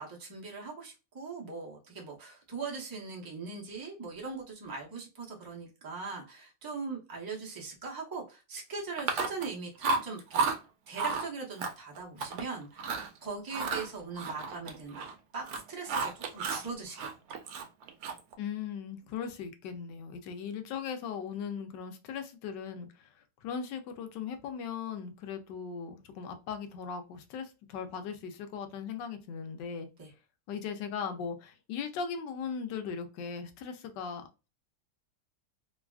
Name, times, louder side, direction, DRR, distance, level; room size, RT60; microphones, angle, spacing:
voice 1, 0.0-10.5 10.9-15.1 15.3-17.4 30.0-30.1, right 4 dB, 35° right, -1 dB, 0.3 m, -40 dB
Chewing mastication, 9.0-9.5 9.8-10.6 11.0-11.3 11.6-12.4 12.8-13.1 13.5-15.1 15.4-16.7 17.0-18.3, right 4 dB, 70° right, 1.1 m, -32 dB
voice 2, 18.4-23.1 23.4-29.9 30.5-34.2, left 6 dB, 80° left, 7 dB, 1.3 m, -38 dB
3.2 x 2.3 x 2.3 m, 0.30 s
omnidirectional pair, 1.9 m